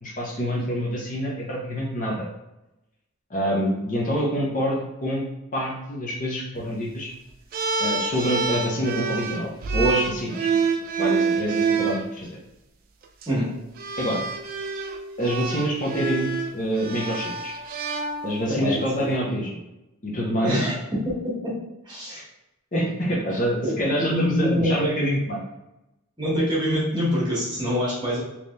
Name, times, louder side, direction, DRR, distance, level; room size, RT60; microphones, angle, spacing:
voice 1, 0.0-2.3 3.3-7.1 7.8-10.5 11.0-12.4 14.0-14.2 15.2-17.5 18.2-19.6 20.0-20.7 22.1-22.2 22.7-25.4, equal, 35° left, -3 dB, 0.7 m, -26 dB
sound 1, 7.5-12.0 13.0-13.3 13.8-18.6, right 5 dB, 40° right, 0.3 m, -27 dB
voice 2, 18.5-19.1 20.4-21.5 21.8-22.2 23.6-23.8 24.1-25.2 26.2-28.2, equal, 20° right, -7 dB, 1.4 m, -25 dB
3.6 x 2.9 x 2.6 m, 0.93 s
head